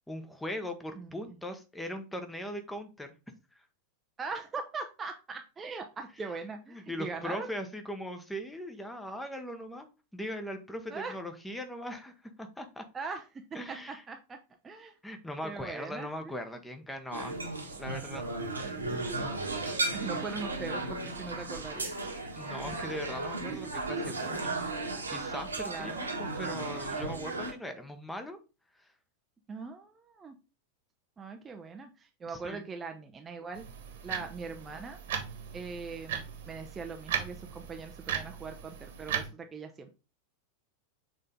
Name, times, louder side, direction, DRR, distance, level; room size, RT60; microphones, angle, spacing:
voice 1, 0.1-3.1 3.5-3.6 6.7-12.8 13.5-14.0 15.0-17.4 17.7-18.3 22.4-28.4 28.8-28.9 32.3-32.6, left 1 dB, 5° left, 7 dB, 1.0 m, -40 dB
voice 2, 4.2-7.5 10.9-11.1 12.9-13.4 13.7-14.4 14.6-15.0 15.4-16.3 18.6-19.3 19.9-21.9 25.7-26.0 29.5-30.4 31.2-33.6 34.0-35.0 35.5-39.9, right 4 dB, 20° right, 5 dB, 0.6 m, -41 dB
sound 1, 17.1-27.5, right 2 dB, 80° right, 1.4 m, -35 dB
sound 2, 33.5-39.3, right 8 dB, 55° right, 1.4 m, -38 dB
6.5 x 3.8 x 3.8 m, 0.31 s
figure-of-eight pair, 90°, 0 cm